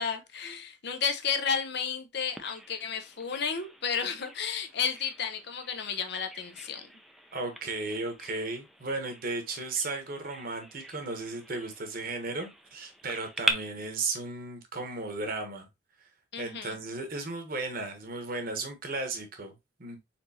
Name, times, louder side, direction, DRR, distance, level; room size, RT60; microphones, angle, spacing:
voice 1, 0.0-6.9 16.3-16.8, left 6 dB, 60° left, 0.7 m, -32 dB
Bird vocalization bird call bird song, 2.4-13.5, equal, ahead, 0.5 m, -40 dB
voice 2, 7.3-15.7 16.4-19.5 19.8-20.0, right 3 dB, 50° right, 1.1 m, -35 dB
4.4 x 4.0 x 2.7 m
head